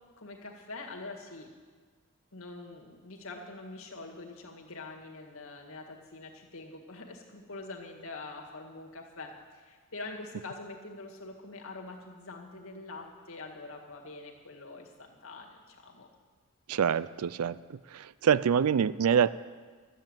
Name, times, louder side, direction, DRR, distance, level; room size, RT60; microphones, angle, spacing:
voice 1, 0.2-1.5 2.3-16.1, left 3 dB, 70° left, 1 dB, 1.9 m, -44 dB
voice 2, 16.7-17.6 17.9-19.3, right 7 dB, 85° right, 18 dB, 0.4 m, -25 dB
12.5 x 7.9 x 8.9 m, 1.5 s
head